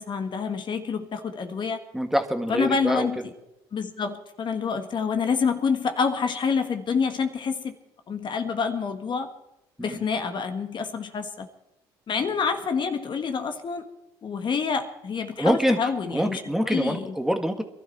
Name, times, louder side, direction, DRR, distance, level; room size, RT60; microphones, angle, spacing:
voice 1, 0.0-1.8 2.5-3.2 3.7-7.7 8.1-9.3 9.8-11.5 12.1-13.8 14.2-17.1, left 5 dB, 45° left, 7 dB, 1.7 m, -27 dB
voice 2, 1.9-3.1 9.8-10.0 15.4-17.6, equal, 5° right, 6 dB, 1.7 m, -25 dB
22.5 x 12.5 x 4.3 m, 0.88 s
supercardioid pair, 70°, 11 cm